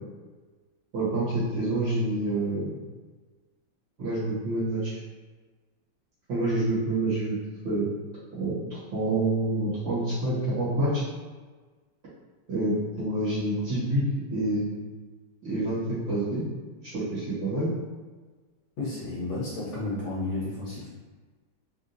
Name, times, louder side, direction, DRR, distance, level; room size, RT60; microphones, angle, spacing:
voice 1, 0.9-2.8 4.0-5.0 6.3-7.4 7.6-7.9 8.3-11.0 12.5-14.0 14.3-14.7 15.4-16.4 16.8-17.7, right 2 dB, 65° right, -10 dB, 2.0 m, -27 dB
voice 2, 18.8-20.9, left 2 dB, 65° left, -8 dB, 1.2 m, -32 dB
4.4 x 2.4 x 2.6 m, 1.4 s
omnidirectional pair, 2.3 m